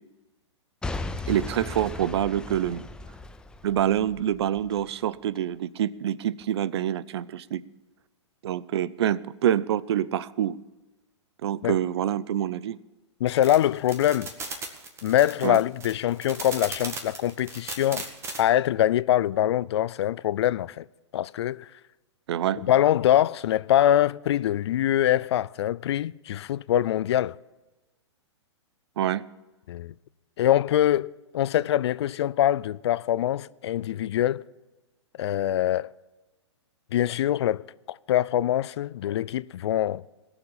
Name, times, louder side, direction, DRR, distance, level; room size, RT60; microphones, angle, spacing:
Boom / Shatter / Crushing, 0.8-4.8 5.4-5.5, left 3 dB, 5° left, 0.5 m, -36 dB
voice 1, 1.3-2.8 3.6-7.6 8.4-10.6 11.4-12.8 15.4-15.6 22.3-22.6 29.0-29.2, right 11 dB, 60° right, 0.5 m, -26 dB
voice 2, 13.2-14.3 15.0-18.0 18.4-20.8 21.1-21.7 22.6-27.4 29.7-29.9 30.4-34.4 35.2-35.9 36.9-40.0, left 12 dB, 65° left, 0.4 m, -24 dB
sound 1, 13.3-18.4, right 3 dB, 15° right, 1.7 m, -37 dB
19.0 x 7.1 x 7.2 m
hypercardioid pair, 125°, 15 cm